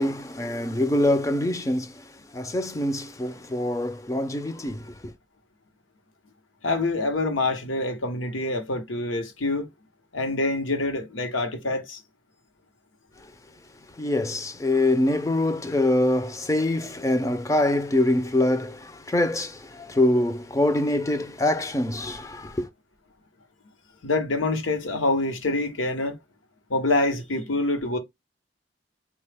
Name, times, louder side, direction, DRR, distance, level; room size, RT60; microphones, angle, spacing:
voice 1, 0.0-2.0 2.3-5.1 14.0-22.7, left 1 dB, 15° left, 0.4 m, -24 dB
voice 2, 6.6-9.7 10.1-12.0 24.0-26.2 26.7-28.0, left 2 dB, 90° left, 0.9 m, -26 dB
3.8 x 2.2 x 3.3 m
head